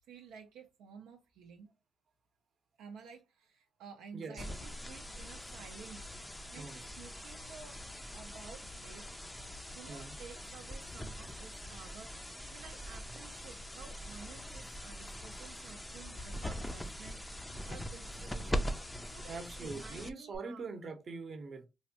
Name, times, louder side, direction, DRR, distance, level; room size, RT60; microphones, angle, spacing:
voice 1, 0.1-1.7 2.8-9.1 9.7-17.3 17.7-18.7 19.1-20.6, right 6 dB, 90° right, 0.4 m, -53 dB
voice 2, 4.1-4.4 6.6-6.8 9.9-10.2 19.3-21.7, right 4 dB, 50° right, 0.7 m, -43 dB
sound 1, 4.4-20.4, equal, 10° left, 0.4 m, -42 dB
3.1 x 2.1 x 2.7 m
cardioid pair, 80°, 0 cm